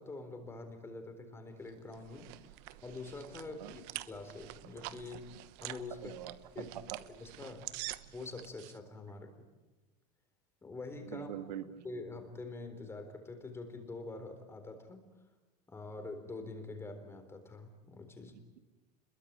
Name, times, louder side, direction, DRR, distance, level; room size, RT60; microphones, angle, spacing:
voice 1, 0.0-2.4 2.8-6.1 6.5-6.8 7.2-7.6 8.1-9.3 10.6-11.3 11.8-15.1 15.7-18.3, left 3 dB, 10° left, 7 dB, 4.0 m, -45 dB
sound 1, 1.7-8.8, right 18 dB, 50° right, 1.2 m, -47 dB
voice 2, 6.0-7.0 11.1-11.8 18.3-18.6, right 11 dB, 90° right, 8 dB, 2.2 m, -44 dB
27.0 x 22.5 x 8.8 m, 1.1 s
supercardioid pair, 150°, 21 cm